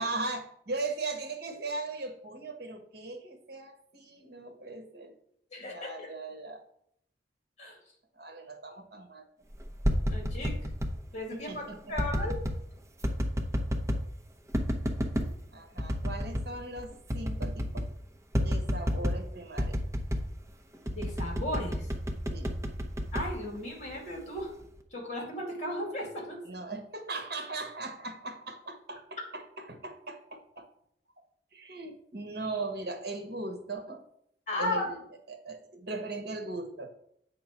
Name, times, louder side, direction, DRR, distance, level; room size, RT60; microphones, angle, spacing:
voice 1, 0.0-5.1 5.6-6.6 8.2-9.2 11.5-11.8 15.5-17.9 18.4-19.8 22.3-22.5 26.4-30.7 31.5-34.0 34.6-35.0 35.3-36.9, right 3 dB, 60° right, 6 dB, 1.4 m, -38 dB
voice 2, 5.5-6.1 7.6-7.8 10.1-10.6 11.1-11.6 11.9-12.4 20.9-21.9 23.1-24.5 24.9-26.4 34.5-34.9, left 1 dB, 45° left, 0 dB, 2.4 m, -35 dB
sound 1, 9.6-11.0 12.0-12.6 13.0-14.1 14.5-15.3 15.8-16.5 16.8-16.9 17.1-17.9 18.3-19.3 19.6-20.3 20.9-24.0 24.4-24.8, equal, 15° right, 0.8 m, -30 dB
8.2 x 3.8 x 5.9 m, 0.70 s
head